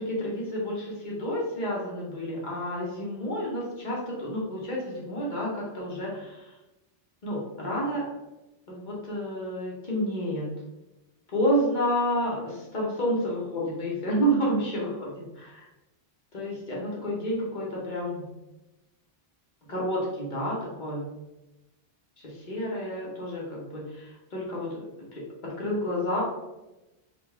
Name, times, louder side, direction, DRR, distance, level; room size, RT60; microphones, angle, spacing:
voice 1, 0.0-6.5 7.2-8.0 8.7-10.5 11.3-15.7 16.3-18.3 19.7-21.0 22.2-26.2, equal, 45° left, -4 dB, 1.2 m, -30 dB
3.8 x 2.5 x 3.5 m, 0.99 s
omnidirectional pair, 1.2 m